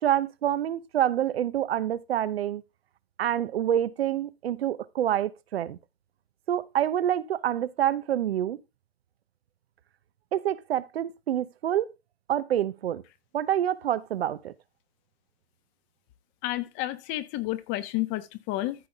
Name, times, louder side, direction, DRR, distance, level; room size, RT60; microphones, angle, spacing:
voice 1, 0.0-2.6 3.2-5.8 6.5-8.6 10.3-11.9 12.3-13.0 13.3-14.5, right 11 dB, 75° right, 0.9 m, -27 dB
voice 2, 16.4-18.2 18.5-18.7, left 16 dB, 40° left, 1.3 m, -30 dB
14.0 x 5.2 x 3.5 m
hypercardioid pair, 120°, 31 cm